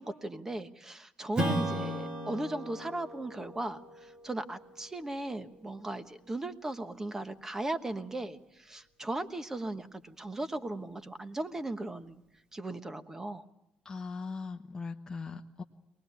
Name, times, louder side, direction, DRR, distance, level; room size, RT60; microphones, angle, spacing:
voice 1, 0.0-12.2 12.5-13.4, right 2 dB, 15° right, 10 dB, 1.2 m, -37 dB
Strum, 1.3-6.3, right 1 dB, 30° right, 2.1 m, -37 dB
voice 2, 13.8-15.6, left 4 dB, 20° left, 2 dB, 1.1 m, -39 dB
23.5 x 20.0 x 8.3 m, 0.89 s
cardioid pair, 115°, 3 cm